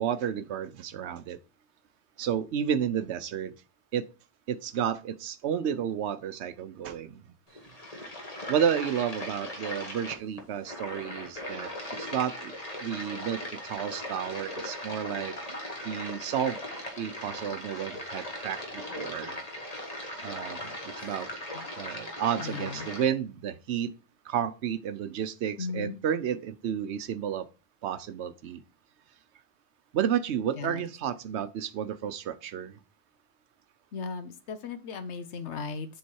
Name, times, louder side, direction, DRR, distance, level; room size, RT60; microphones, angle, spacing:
voice 1, 0.0-1.4 2.2-3.5 3.9-4.0 4.5-7.2 8.5-11.7 12.0-12.5 12.8-15.3 15.8-16.6 16.9-19.3 20.2-21.3 21.8-23.9 24.3-27.4 27.8-28.6 29.9-32.7, right 9 dB, 80° right, 0.9 m, -31 dB
sound 1, 7.5-23.1, left 1 dB, 35° left, 1.4 m, -39 dB
voice 2, 22.4-22.9 25.6-26.0 30.6-30.8 33.9-36.0, left 5 dB, 85° left, 1.1 m, -37 dB
7.2 x 3.7 x 4.6 m
omnidirectional pair, 1.1 m